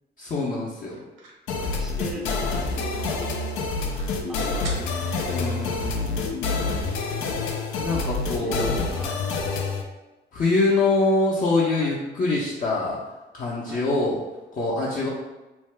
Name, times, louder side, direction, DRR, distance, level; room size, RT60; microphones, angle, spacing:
voice 1, 0.2-1.0 5.3-6.6 7.8-8.8 10.3-13.0 13.3-14.2 14.5-15.1, left 3 dB, 45° left, -6 dB, 0.6 m, -24 dB
sound 1, 0.9-3.3 3.6-3.7 3.9-4.2 4.6-5.9, right 3 dB, 65° right, 0.7 m, -45 dB
sound 2, 1.5-9.8, left 3 dB, 85° left, 0.4 m, -27 dB
voice 2, 1.6-3.3 4.3-5.6 7.9-8.1 8.4-9.2 11.8-12.0 13.7-13.9, equal, ahead, 1 dB, 0.4 m, -40 dB
2.6 x 2.2 x 3.2 m, 1.1 s
cardioid pair, 90°, 20 cm